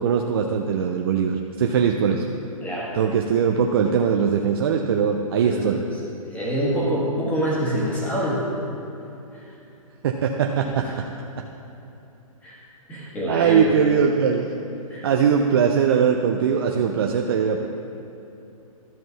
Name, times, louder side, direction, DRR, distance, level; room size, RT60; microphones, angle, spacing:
voice 1, 0.0-2.2 2.9-5.8 10.0-10.9 13.2-14.6 15.0-17.7, right 7 dB, 40° right, 2 dB, 0.5 m, -21 dB
voice 2, 5.4-5.8 6.3-8.4 9.3-9.4 10.8-11.0 12.4-12.6 12.9-13.7 14.9-15.1, equal, 10° left, -6 dB, 1.6 m, -25 dB
12.5 x 6.0 x 4.0 m, 2.9 s
hypercardioid pair, 160°, 19 cm